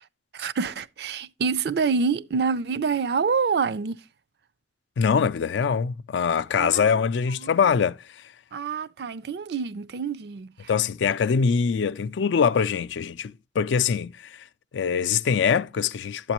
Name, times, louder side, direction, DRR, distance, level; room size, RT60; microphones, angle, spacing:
voice 1, 0.3-4.0 6.6-6.9 7.4-7.5 8.5-10.5, right 5 dB, 60° right, 0.4 m, -26 dB
voice 2, 5.0-8.2 10.7-14.4 14.7-16.3, left 6 dB, 80° left, 0.4 m, -23 dB
11.0 x 8.0 x 2.9 m
head